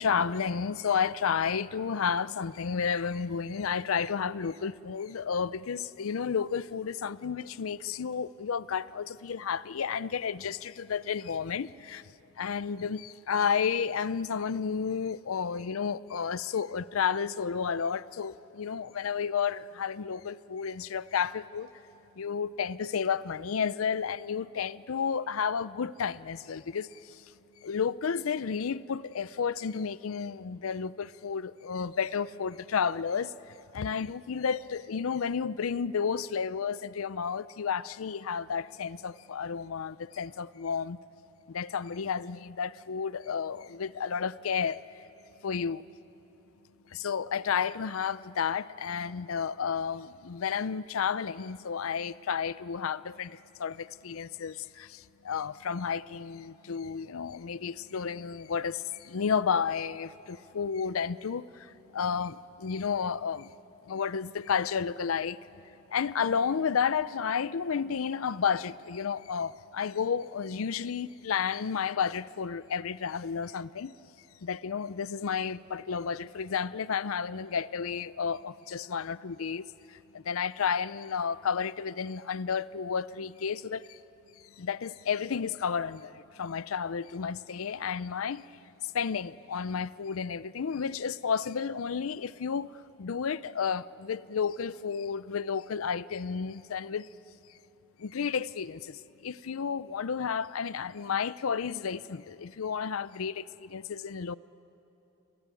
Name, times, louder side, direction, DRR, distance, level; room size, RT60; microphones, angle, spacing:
voice 1, 0.0-12.1 12.4-21.7 22.2-27.3 27.6-41.0 41.5-44.8 45.4-45.8 46.9-63.5 63.9-65.4 65.9-73.9 74.4-79.6 79.9-84.0 84.6-88.4 88.9-97.1 98.0-104.3, left 6 dB, 85° left, 0.5 m, -32 dB
29.5 x 20.5 x 9.1 m
head